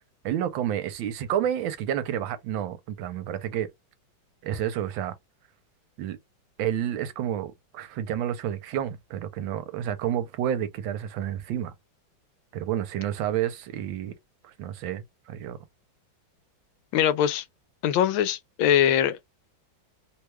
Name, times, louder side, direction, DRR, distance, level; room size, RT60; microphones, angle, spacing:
voice 1, 0.2-3.7 4.4-5.1 6.0-6.2 6.6-11.7 12.5-14.1 14.4-15.6, right 10 dB, 80° right, 1.4 m, -30 dB
voice 2, 16.9-17.4 17.8-19.2, left 10 dB, 85° left, 1.4 m, -22 dB
3.3 x 2.3 x 3.0 m
omnidirectional pair, 2.1 m